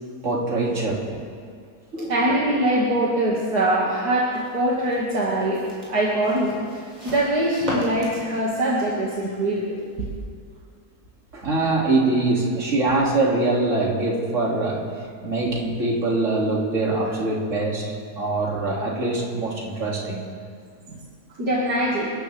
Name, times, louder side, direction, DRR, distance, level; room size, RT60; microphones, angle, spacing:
voice 1, 0.2-1.1 1.9-2.3 11.3-14.9 15.2-17.8 18.1-20.2, right 2 dB, 50° right, -3 dB, 3.0 m, -23 dB
voice 2, 2.1-6.5 7.0-9.7 10.0-10.1 20.9-21.0 21.4-22.1, right 1 dB, 75° right, -5 dB, 2.7 m, -23 dB
sound 1, 4.3-10.1, equal, 25° right, 5.9 m, -37 dB
28.5 x 14.0 x 3.4 m, 2.1 s
omnidirectional pair, 1.7 m